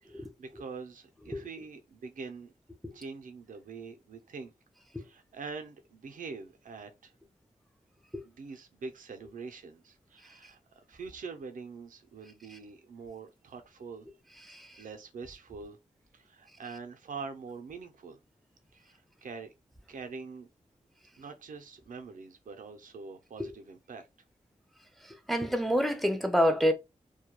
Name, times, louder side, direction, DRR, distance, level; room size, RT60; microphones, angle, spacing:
voice 1, 0.0-2.5 2.9-4.5 5.0-7.1 8.2-10.6 10.9-14.1 14.8-15.8 16.1-18.2 18.7-19.5 19.9-20.5 21.2-24.0, right 4 dB, 90° right, 0.5 m, -44 dB
voice 2, 14.5-14.8 25.0-26.7, equal, ahead, 0.4 m, -28 dB
2.2 x 2.1 x 2.9 m
wide cardioid pair, 95°, 13 cm